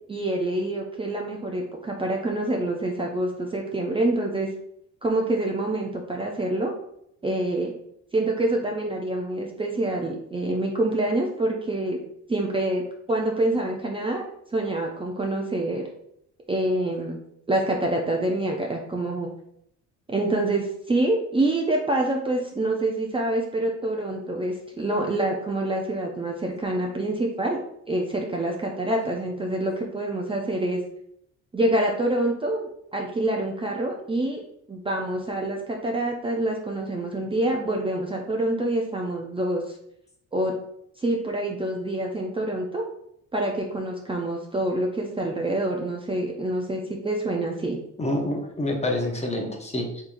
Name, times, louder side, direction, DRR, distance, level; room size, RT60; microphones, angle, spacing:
voice 1, 0.1-4.5 5.0-6.7 7.2-7.7 8.1-12.0 12.3-12.8 13.1-14.2 14.5-15.8 16.5-17.2 17.5-19.3 20.1-27.6 27.9-30.8 31.5-34.4 34.7-39.6 40.3-40.5 41.0-42.8 43.3-47.8, right 1 dB, 20° right, 0 dB, 0.5 m, -26 dB
voice 2, 48.0-50.0, left 1 dB, 20° left, 1 dB, 0.8 m, -27 dB
3.5 x 3.0 x 2.5 m, 0.74 s
cardioid pair, 90°, 30 cm